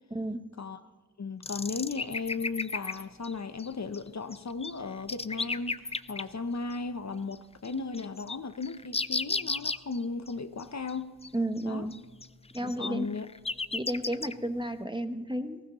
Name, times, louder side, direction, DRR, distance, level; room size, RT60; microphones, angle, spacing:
voice 1, 0.1-0.4 11.3-11.9 12.5-13.2 13.7-15.6, right 1 dB, 15° right, 0.8 m, -32 dB
voice 2, 1.2-5.8 6.1-11.2 11.6-11.9 12.6-13.3, left 4 dB, 50° left, 0.7 m, -36 dB
sound 1, 1.4-3.3 3.6-4.0 4.3-6.2 6.7-6.8 7.3-7.4 7.6-10.0 10.3-10.4 10.6-10.7 10.9-11.0 11.2-11.6 11.9-14.3, left 3 dB, 20° left, 0.4 m, -34 dB
20.0 x 15.5 x 3.0 m
wide cardioid pair, 75°, 35 cm